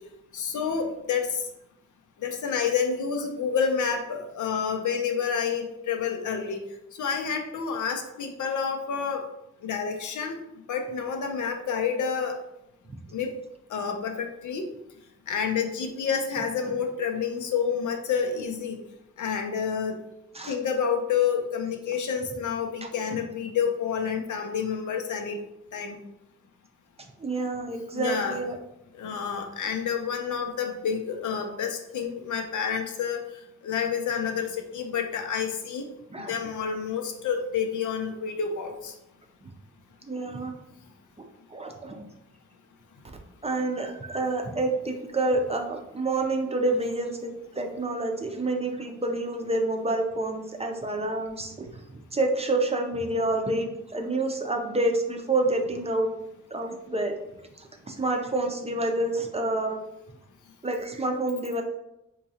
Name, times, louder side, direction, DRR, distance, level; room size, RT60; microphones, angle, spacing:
voice 1, 0.3-1.3 2.2-6.6 7.0-9.2 9.6-10.4 10.7-12.4 13.1-13.3 13.7-14.6 15.3-18.8 19.2-19.9 20.5-25.4 25.7-26.0 27.9-28.4 29.0-33.2 33.6-35.9 36.2-38.9, left 6 dB, 85° left, 4 dB, 0.6 m, -29 dB
voice 2, 27.2-28.6 36.1-36.3 40.1-40.5 41.5-42.0 43.4-56.1 56.5-57.1 57.6-59.8 60.6-61.6, right 2 dB, 20° right, 3 dB, 0.5 m, -28 dB
3.6 x 3.0 x 2.8 m, 0.86 s
wide cardioid pair, 100°, 30 cm